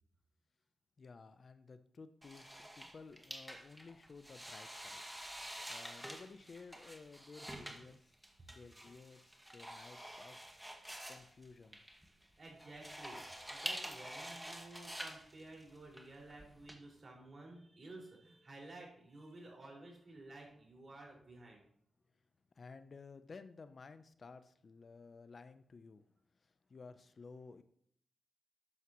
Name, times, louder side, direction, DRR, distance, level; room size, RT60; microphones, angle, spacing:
voice 1, 1.0-5.0 5.7-8.0 8.5-10.4 11.1-11.8 22.6-26.0 26.7-27.6, left 4 dB, 50° left, 11 dB, 0.7 m, -55 dB
sound 1, 2.2-16.7, right 1 dB, 10° right, 2.0 m, -48 dB
voice 2, 12.4-21.6, right 2 dB, 45° right, -1 dB, 5.3 m, -54 dB
13.0 x 9.3 x 3.1 m, 0.65 s
cardioid pair, 65°, 0 cm